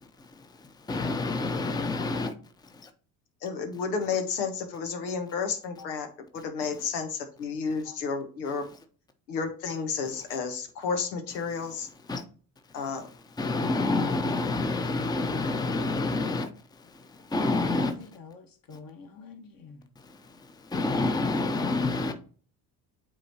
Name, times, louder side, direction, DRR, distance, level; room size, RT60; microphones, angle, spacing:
voice 1, 0.2-2.3 2.6-2.9 12.1-12.2 13.4-17.9 20.0-22.1, left 3 dB, 10° left, 0.8 m, -29 dB
voice 2, 3.4-6.1 6.3-8.6 9.3-11.9 12.7-13.1, left 5 dB, 85° left, 1.2 m, -31 dB
voice 3, 17.9-19.9, left 5 dB, 45° left, 1.6 m, -47 dB
8.8 x 3.7 x 2.8 m
hypercardioid pair, 70°, 49 cm